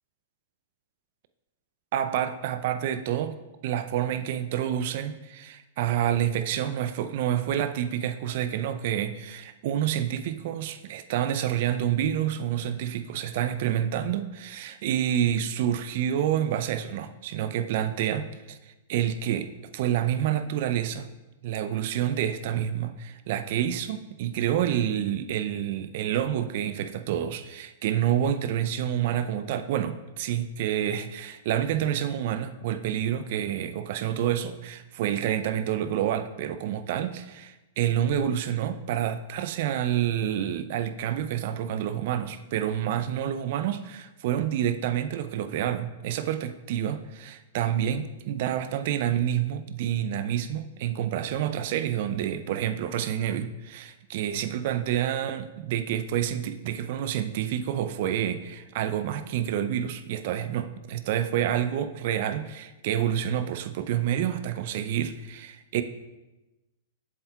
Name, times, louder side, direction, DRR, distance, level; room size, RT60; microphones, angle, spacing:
voice 1, 1.9-3.4 3.6-18.6 18.9-21.1 21.4-65.8, right 10 dB, 55° right, 11 dB, 0.5 m, -28 dB
7.8 x 7.3 x 2.3 m, 1.1 s
hypercardioid pair, 105°, 0 cm